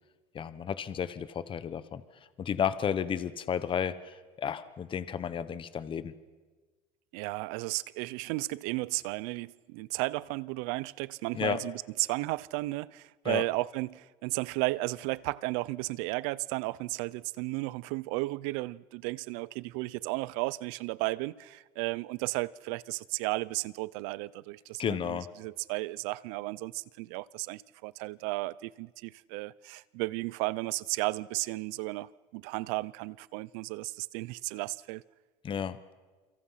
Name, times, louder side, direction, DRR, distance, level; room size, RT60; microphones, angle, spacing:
voice 1, 0.3-2.0 2.4-6.1 11.3-11.6 13.2-13.4 24.8-25.3 35.4-35.8, left 8 dB, 30° left, 1.2 m, -32 dB
voice 2, 7.1-35.0, right 22 dB, 80° right, 0.7 m, -34 dB
29.0 x 24.0 x 5.8 m
supercardioid pair, 120°, 16 cm